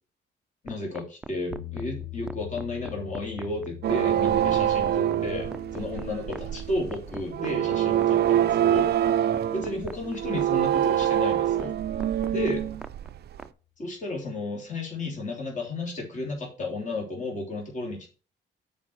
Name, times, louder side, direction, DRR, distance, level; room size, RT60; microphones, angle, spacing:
voice 1, 0.6-9.2 9.5-11.7 12.3-12.7 13.8-18.1, left 2 dB, 40° left, -1 dB, 3.0 m, -33 dB
sound 1, 0.7-13.5, right 1 dB, 5° right, 0.5 m, -40 dB
sound 2, 1.5-11.5, left 13 dB, 85° left, 3.4 m, -45 dB
sound 3, 3.8-13.4, right 11 dB, 55° right, 0.5 m, -25 dB
7.2 x 4.8 x 5.8 m, 0.37 s
cardioid pair, 90°, 20 cm